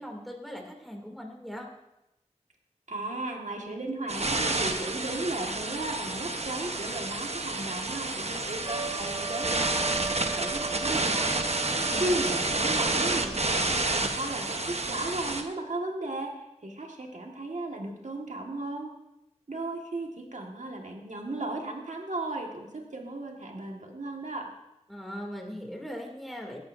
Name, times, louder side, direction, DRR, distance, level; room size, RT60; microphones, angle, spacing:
voice 1, 0.0-1.7 11.7-12.3 24.9-26.7, equal, ahead, 0 dB, 2.6 m, -40 dB
voice 2, 2.9-11.3 12.0-16.3 16.6-18.9 19.5-24.5, right 2 dB, 90° right, 1 dB, 1.7 m, -35 dB
sound 1, 4.1-15.4, right 2 dB, 60° right, 1.0 m, -29 dB
Trumpet, 8.6-13.7, right 5 dB, 40° right, 0.7 m, -38 dB
17.5 x 11.5 x 2.6 m, 0.90 s
wide cardioid pair, 40°, 12 cm